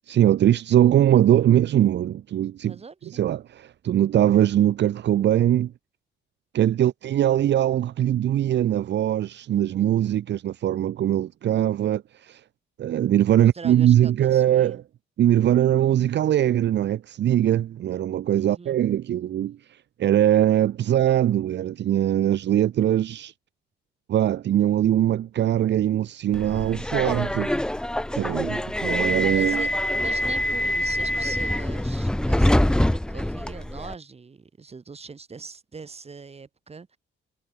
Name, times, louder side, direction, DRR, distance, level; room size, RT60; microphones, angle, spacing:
voice 1, 0.1-2.8 3.0-5.7 6.5-12.4 12.8-14.8 15.2-23.3 24.1-27.5 28.1-29.7, right 11 dB, 60° right, 0.9 m, -21 dB
voice 2, 2.6-3.3 13.3-14.8 18.4-18.8 28.1-29.0 29.3-37.0, right 4 dB, 30° right, 3.1 m, -42 dB
Subway metro underground, 26.3-33.9, left 1 dB, 5° left, 0.6 m, -25 dB
cardioid pair, 90°, 20 cm